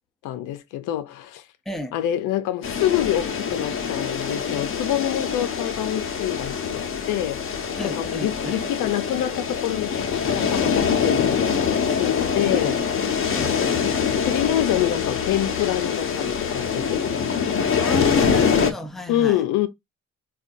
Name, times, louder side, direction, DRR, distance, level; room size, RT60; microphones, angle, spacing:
voice 1, 0.2-1.5 1.9-12.8 14.2-17.3 19.1-19.7, left 12 dB, 90° left, 0.5 m, -26 dB
voice 2, 1.7-2.0 7.8-8.7 12.5-12.8 13.3-13.6 17.8-19.4, left 2 dB, ahead, 0.5 m, -31 dB
sound 1, 2.6-18.7, left 6 dB, 45° left, 0.7 m, -24 dB
3.7 x 2.3 x 2.5 m
cardioid pair, 90°, 30 cm